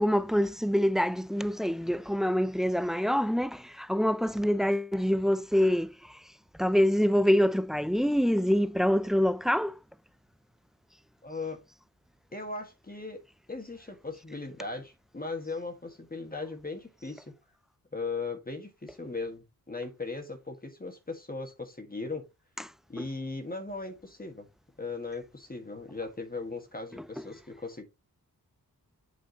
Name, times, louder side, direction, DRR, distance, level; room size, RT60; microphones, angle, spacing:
voice 1, 0.0-5.9 6.6-9.7, equal, ahead, 0.3 m, -25 dB
voice 2, 11.2-11.6 12.3-13.2 13.5-17.3 17.9-22.2 22.9-24.4 24.8-27.8, left 3 dB, 25° left, 1.6 m, -38 dB
8.2 x 6.1 x 2.9 m
wide cardioid pair, 120°, 36 cm